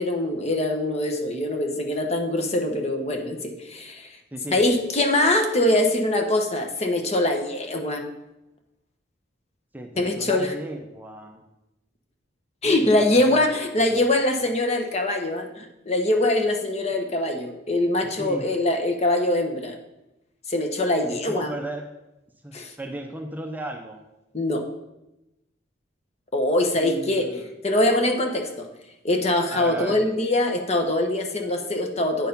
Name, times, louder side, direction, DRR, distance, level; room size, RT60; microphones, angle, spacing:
voice 1, 0.0-4.1 4.5-8.0 10.0-10.5 12.6-19.7 20.5-21.5 22.5-22.7 24.3-24.6 26.3-27.3 27.6-28.7 29.0-32.3, left 1 dB, 35° left, 4 dB, 1.0 m, -23 dB
voice 2, 9.7-11.4 12.6-13.5 13.9-14.0 18.2-18.5 21.1-21.8 22.4-24.0 26.8-27.5 29.5-30.0, right 1 dB, 10° right, 3 dB, 0.5 m, -36 dB
9.0 x 4.6 x 5.3 m, 0.93 s
head